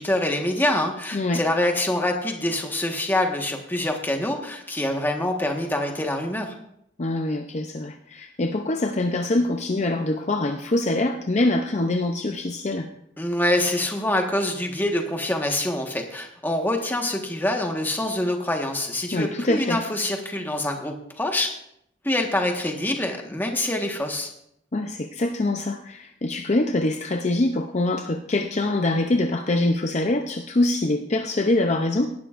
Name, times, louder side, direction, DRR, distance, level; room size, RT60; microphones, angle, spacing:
voice 1, 0.0-6.5 13.2-21.5 22.0-24.3, left 1 dB, 10° left, 2 dB, 1.4 m, -25 dB
voice 2, 1.1-1.4 7.0-12.9 19.1-19.8 24.7-32.1, left 2 dB, 35° left, 5 dB, 0.6 m, -24 dB
18.0 x 11.5 x 2.5 m, 0.76 s
head